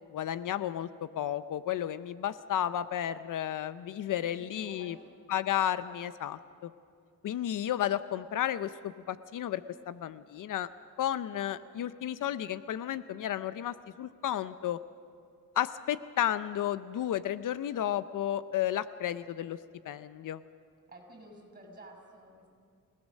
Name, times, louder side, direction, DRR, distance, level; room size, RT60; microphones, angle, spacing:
voice 1, 0.1-0.9 1.2-5.0 5.3-6.7 7.2-10.7 11.0-14.8 15.6-19.6 19.9-20.4, left 11 dB, 65° left, 14 dB, 0.6 m, -32 dB
voice 2, 4.0-5.1 20.9-22.5, right 1 dB, 25° right, 3 dB, 6.1 m, -51 dB
27.5 x 17.5 x 6.4 m, 2.3 s
cardioid pair, 110°, 34 cm